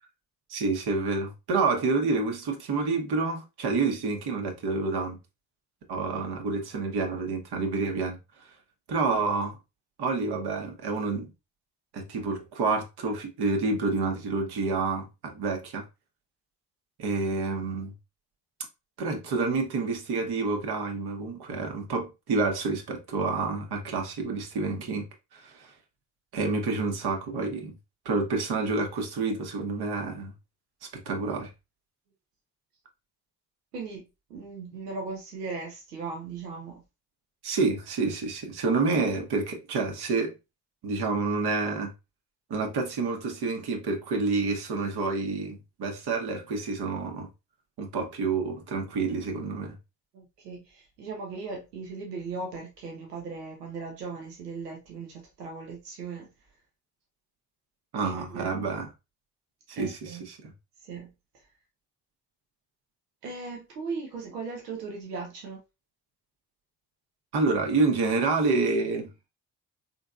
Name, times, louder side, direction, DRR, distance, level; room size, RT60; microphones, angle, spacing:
voice 1, 0.5-5.2 5.9-8.2 8.9-9.6 10.0-11.3 11.9-15.8 17.0-17.9 19.0-25.1 25.3-25.7 26.3-27.7 28.0-30.3 30.9-31.5 37.4-40.3 40.8-41.9 42.5-47.3 47.8-49.8 57.9-58.9 59.7-60.5 67.3-69.3, right 3 dB, 55° right, 1.0 m, -28 dB
voice 2, 33.7-34.0 34.3-36.8 50.1-56.3 58.0-58.7 59.7-60.3 60.8-61.5 63.2-65.6, right 4 dB, 90° right, 0.7 m, -38 dB
3.7 x 2.7 x 2.3 m
hypercardioid pair, 40°, 46 cm